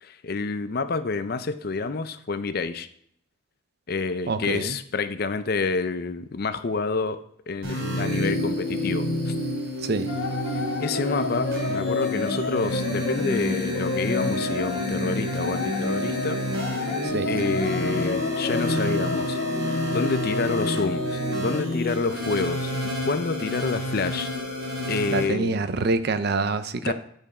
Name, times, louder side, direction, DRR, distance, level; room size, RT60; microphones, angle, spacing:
voice 1, 0.0-2.9 3.9-7.2 7.5-9.3 10.8-16.4 17.3-19.4 19.9-24.3 24.9-25.6 26.8-26.9, left 4 dB, 50° left, 12 dB, 0.5 m, -28 dB
voice 2, 4.3-4.8 9.8-10.1 17.0-17.3 25.1-26.9, right 3 dB, 50° right, 12 dB, 0.5 m, -26 dB
sound 1, 7.6-25.2, left 1 dB, 75° right, 3.0 m, -29 dB
sound 2, 10.1-22.8, left 2 dB, 65° left, 1.1 m, -31 dB
9.2 x 5.3 x 4.8 m, 0.69 s
head